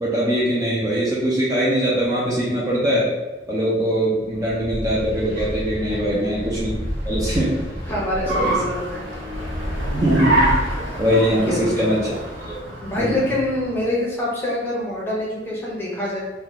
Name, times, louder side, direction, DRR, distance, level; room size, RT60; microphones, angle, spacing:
voice 1, 0.0-3.1 3.5-6.7 7.0-7.6 8.3-8.5 9.9-10.5 11.0-12.2 12.5-12.6 13.0-13.3, equal, 20° right, -6 dB, 0.5 m, -21 dB
Car, 4.3-13.9, right 1 dB, 75° right, 0.9 m, -27 dB
voice 2, 5.9-6.2 7.9-9.0 11.3-11.9 12.8-16.2, left 1 dB, 10° left, -5 dB, 0.8 m, -25 dB
2.9 x 2.2 x 3.6 m, 1.2 s
head